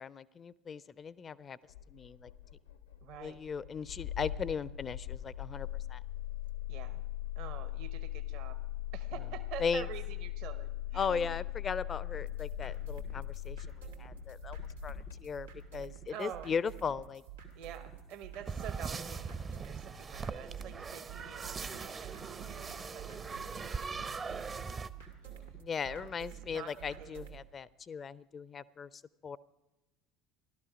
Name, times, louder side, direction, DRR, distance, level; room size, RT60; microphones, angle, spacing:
voice 1, 0.0-1.6 1.9-2.3 3.2-6.0 9.6-9.9 10.9-13.6 14.0-14.6 14.8-17.2 25.6-29.4, left 6 dB, 35° left, 21 dB, 0.4 m, -37 dB
Engine starting, 1.7-15.8, left 12 dB, 80° left, 0.7 m, -40 dB
voice 2, 3.0-3.4 6.7-7.0 7.4-8.6 8.9-11.4 16.1-16.5 17.6-25.6 25.8-27.2, right 8 dB, 55° right, 11 dB, 0.8 m, -48 dB
sound 1, 12.1-27.4, right 9 dB, 85° right, 2.1 m, -50 dB
sound 2, 18.5-24.9, right 5 dB, 30° right, 0.5 m, -40 dB
15.0 x 12.0 x 5.0 m, 1.0 s
figure-of-eight pair, 65°, 0 cm